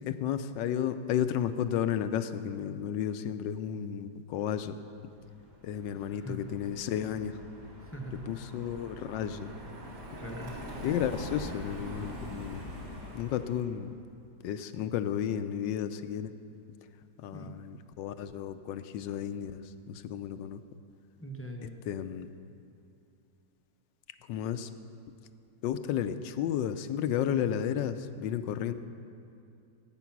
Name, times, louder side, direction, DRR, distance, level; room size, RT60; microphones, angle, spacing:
voice 1, 0.0-4.8 5.6-7.4 8.3-9.5 10.8-12.6 13.1-13.9 14.4-16.3 17.2-20.6 21.9-22.3 24.3-24.7 25.6-28.7, left 9 dB, 75° left, 11 dB, 1.3 m, -33 dB
Car passing by, 5.2-13.7, equal, 60° right, 3.1 m, -44 dB
voice 2, 5.9-6.4 7.8-8.2 10.2-10.6 17.3-17.5 21.2-21.8, equal, 15° left, 1 dB, 0.5 m, -42 dB
18.0 x 9.1 x 6.0 m, 2.6 s
omnidirectional pair, 2.1 m